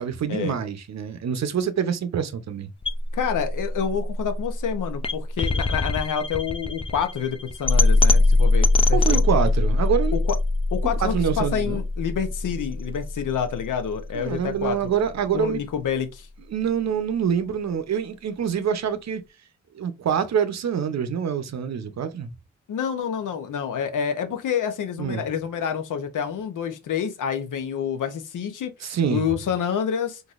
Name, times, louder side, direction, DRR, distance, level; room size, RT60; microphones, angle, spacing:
voice 1, 0.0-2.7 8.9-10.2 11.0-11.8 14.1-15.6 16.5-19.2 19.7-22.3 25.0-25.3 28.8-29.2, right 7 dB, 60° right, 0.6 m, -25 dB
sound 1, 2.8-14.9, left 2 dB, 20° left, 0.4 m, -23 dB
voice 2, 3.1-9.2 10.1-10.2 10.7-14.8 15.3-16.3 22.7-30.2, left 8 dB, 75° left, 0.8 m, -28 dB
3.9 x 2.6 x 2.4 m
cardioid pair, 70°, 31 cm